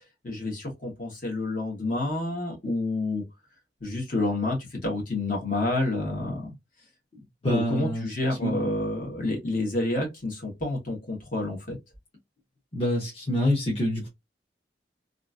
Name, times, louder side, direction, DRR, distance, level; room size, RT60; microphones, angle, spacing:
voice 1, 0.2-3.2 3.8-4.6 4.8-6.5 7.5-11.8, left 2 dB, 50° left, 1.3 m, -29 dB
voice 2, 7.4-8.1 8.4-8.5 12.7-14.1, left 1 dB, 35° left, 1.0 m, -26 dB
2.9 x 2.6 x 2.3 m
head